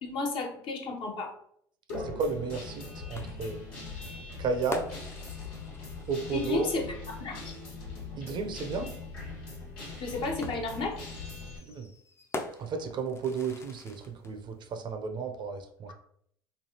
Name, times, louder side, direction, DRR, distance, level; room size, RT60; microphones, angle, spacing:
voice 1, 0.0-1.3 6.3-7.5 10.0-11.0, left 3 dB, 50° left, 2 dB, 0.7 m, -33 dB
Guitar, 1.9-11.6, left 3 dB, 80° left, 1.3 m, -41 dB
voice 2, 2.0-3.6 4.4-5.1 6.1-6.7 8.2-8.9 11.7-11.9 12.6-15.9, right 5 dB, 45° right, 6 dB, 0.5 m, -33 dB
sound 1, 3.1-6.8 8.3-8.4 10.4-14.3, left 2 dB, 25° left, 0.5 m, -43 dB
3.2 x 2.4 x 2.8 m, 0.67 s
hypercardioid pair, 75°, 12 cm